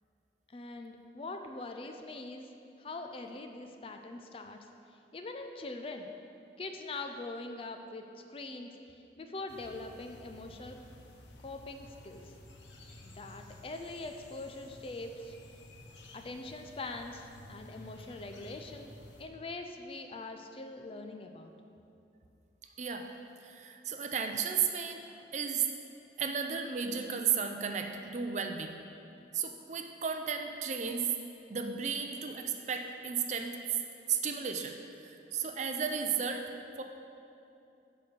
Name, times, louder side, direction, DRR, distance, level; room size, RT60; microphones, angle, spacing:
voice 1, 0.5-2.5 2.8-4.6 5.1-6.1 6.6-8.7 9.2-10.8 11.4-12.3 13.0-15.4 16.1-18.9 19.2-21.5, left 2 dB, 30° left, 5 dB, 0.4 m, -43 dB
sound 1, 9.5-19.3, left 1 dB, 85° left, 0.9 m, -53 dB
voice 2, 22.8-23.1 23.4-25.0 25.3-25.7 26.2-28.8 29.3-31.1 31.5-33.6 34.1-36.4 36.8-36.9, right 6 dB, 40° right, 5 dB, 0.5 m, -34 dB
6.8 x 5.3 x 6.7 m, 2.7 s
head